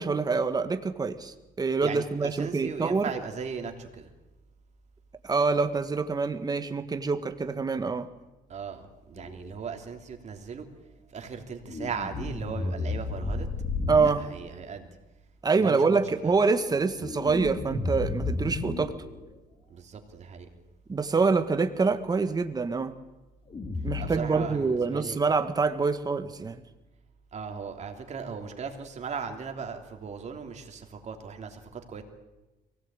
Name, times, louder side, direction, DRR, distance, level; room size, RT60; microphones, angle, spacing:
voice 1, 0.0-3.1 5.2-8.1 13.9-14.2 15.4-18.9 20.9-22.9 23.8-26.6, right 4 dB, 25° right, 9 dB, 1.7 m, -26 dB
voice 2, 1.8-4.1 8.5-10.7 11.1-13.5 14.0-14.9 15.6-16.3 19.7-20.5 24.0-25.2 27.3-32.0, right 6 dB, 45° right, 4 dB, 3.2 m, -38 dB
sound 1, 9.2-9.5 11.6-14.1 16.7-19.3 23.5-24.1, left 3 dB, 35° left, 3.6 m, -33 dB
23.0 x 18.0 x 9.1 m, 1.1 s
cardioid pair, 110°, 17 cm